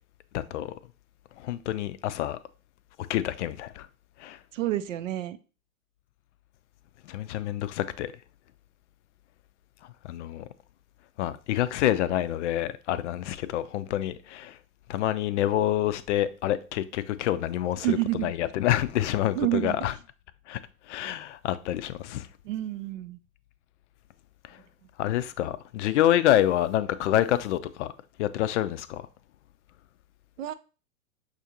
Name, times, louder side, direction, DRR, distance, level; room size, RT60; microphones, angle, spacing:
voice 1, 0.3-0.7 1.4-2.4 3.1-3.9 4.2-4.4 7.1-8.1 10.1-10.5 11.2-14.6 14.9-19.9 20.5-20.6 20.9-22.3 25.0-27.9 28.2-29.1, left 12 dB, 55° left, 0.5 m, -27 dB
voice 2, 4.5-5.4 17.8-18.3 19.3-19.9 22.4-23.2 30.4-30.5, right 14 dB, 60° right, 0.5 m, -29 dB
6.1 x 2.5 x 2.8 m
hypercardioid pair, 105°, 44 cm